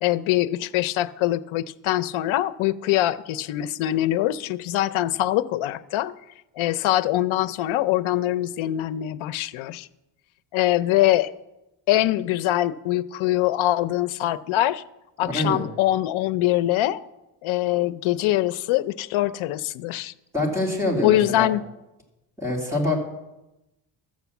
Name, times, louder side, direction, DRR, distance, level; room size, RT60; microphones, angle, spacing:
voice 1, 0.0-6.1 6.6-9.9 10.5-11.3 11.9-14.8 15.2-17.0 17.4-20.1 21.0-21.6, left 14 dB, 85° left, 14 dB, 0.7 m, -23 dB
voice 2, 15.3-15.6 20.3-21.5 22.4-23.0, left 1 dB, 5° right, -2 dB, 2.5 m, -25 dB
12.5 x 7.9 x 7.0 m, 0.95 s
cardioid pair, 175°, 47 cm